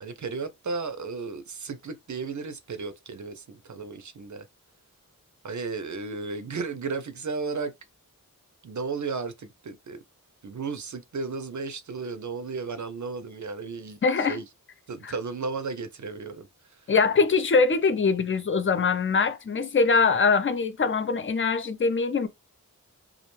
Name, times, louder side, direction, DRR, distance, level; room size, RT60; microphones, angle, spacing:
voice 1, 0.0-4.5 5.4-7.7 8.6-10.0 10.4-14.5 14.9-16.9, right 4 dB, 55° right, 0.5 m, -34 dB
voice 2, 14.0-14.4 15.0-15.1 16.9-22.3, left 4 dB, 35° left, 0.4 m, -23 dB
2.3 x 2.1 x 3.0 m
wide cardioid pair, 40°, 34 cm